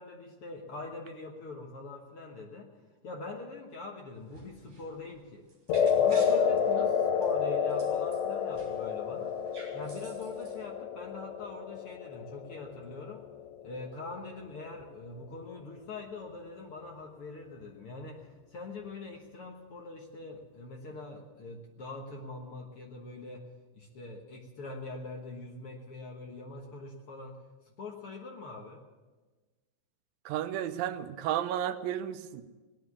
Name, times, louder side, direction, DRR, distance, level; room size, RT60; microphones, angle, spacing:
voice 1, 0.0-2.7 3.0-5.5 6.0-9.4 9.7-13.3 13.6-23.5 23.7-27.4 27.8-28.8, left 3 dB, 55° left, 1 dB, 1.7 m, -43 dB
sound 1, 4.2-8.9 9.2-10.6, right 2 dB, 50° right, 4.0 m, -53 dB
sound 2, 5.7-14.0, left 7 dB, 70° left, 1.5 m, -30 dB
voice 2, 30.3-32.4, right 11 dB, 90° right, 10 dB, 2.5 m, -32 dB
18.0 x 10.5 x 7.1 m, 1.3 s
omnidirectional pair, 3.9 m